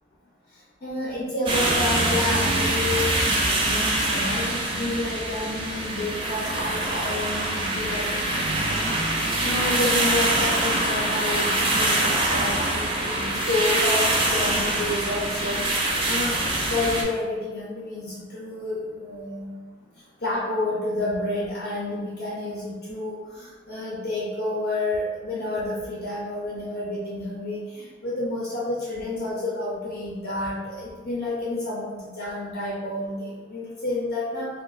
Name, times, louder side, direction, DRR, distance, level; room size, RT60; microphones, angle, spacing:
voice 1, 0.8-19.5 20.2-34.5, left 2 dB, 55° left, -6 dB, 0.6 m, -30 dB
sound 1, 1.5-17.0, right 1 dB, 25° right, 0.4 m, -24 dB
2.6 x 2.1 x 3.9 m, 1.4 s
head